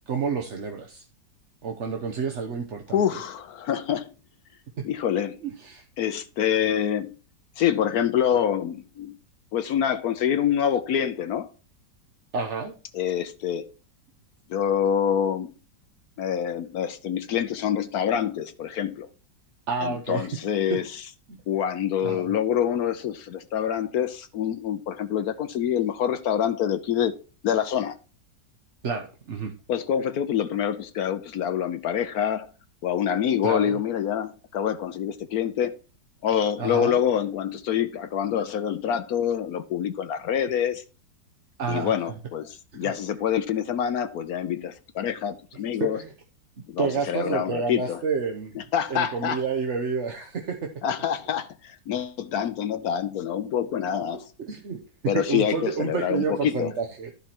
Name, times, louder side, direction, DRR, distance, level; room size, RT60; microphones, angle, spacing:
voice 1, 0.1-1.0 1.6-3.2 5.4-5.8 12.3-12.7 19.7-20.3 20.7-20.8 22.0-22.3 28.8-29.5 33.4-33.8 36.6-37.0 41.6-41.9 42.8-42.9 45.9-46.1 46.8-48.6 48.9-50.7 54.4-54.8 55.1-57.1, right 5 dB, 45° right, 1.1 m, -29 dB
voice 2, 2.9-4.1 4.8-5.4 6.0-7.1 7.6-9.1 9.5-11.5 12.9-13.7 14.5-15.5 16.2-19.1 19.8-20.8 21.5-27.1 27.4-28.0 29.7-32.5 32.8-35.7 36.2-40.8 41.7-46.0 46.7-48.0 48.6-49.4 50.8-54.2 55.1-56.7, left 9 dB, 65° left, 1.0 m, -26 dB
13.0 x 4.6 x 4.3 m
omnidirectional pair, 2.0 m